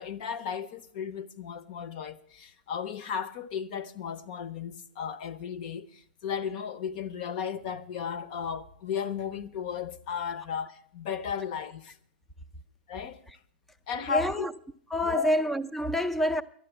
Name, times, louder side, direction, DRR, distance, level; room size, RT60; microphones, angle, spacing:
voice 1, 0.0-11.9 12.9-13.2 13.9-14.5 15.0-15.3, left 7 dB, 45° left, 0.9 m, -35 dB
voice 2, 14.1-14.5 14.9-16.4, equal, 5° left, 0.5 m, -27 dB
12.0 x 9.6 x 8.1 m
hypercardioid pair, 145°, 6 cm